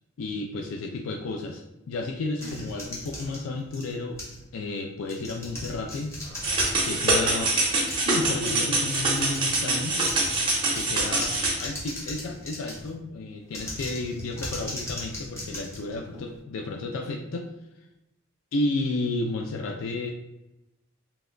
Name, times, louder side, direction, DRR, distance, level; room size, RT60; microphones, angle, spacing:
voice 1, 0.2-4.2 4.5-6.2 6.8-7.5 8.0-10.1 10.7-17.5 18.5-20.1, left 2 dB, 80° left, 3 dB, 0.3 m, -32 dB
sound 1, 2.4-4.4 5.0-13.0 13.5-16.4, left 1 dB, 15° left, 0.6 m, -38 dB
sound 2, 6.4-11.5, right 2 dB, 25° right, 0.7 m, -25 dB
2.9 x 2.2 x 3.7 m, 0.92 s
head